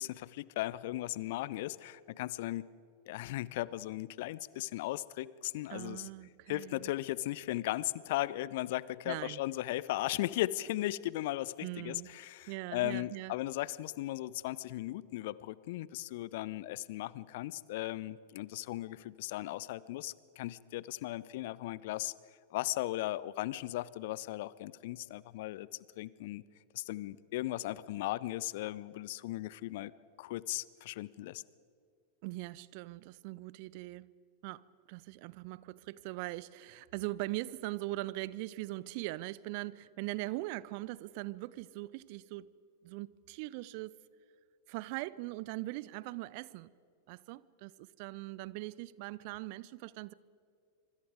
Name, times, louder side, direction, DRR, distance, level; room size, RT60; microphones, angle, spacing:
voice 1, 0.0-2.7 3.1-6.1 6.5-22.1 22.5-25.7 26.0-26.4 26.7-29.9 30.2-31.4, left 16 dB, 50° left, 0.6 m, -37 dB
voice 2, 5.7-6.9 9.1-9.4 11.6-12.1 12.5-13.3 32.2-34.1 34.4-42.5 42.8-43.9 44.7-46.7 47.1-50.1, right 19 dB, 45° right, 0.5 m, -41 dB
26.0 x 24.5 x 4.9 m
figure-of-eight pair, 90°, 0 cm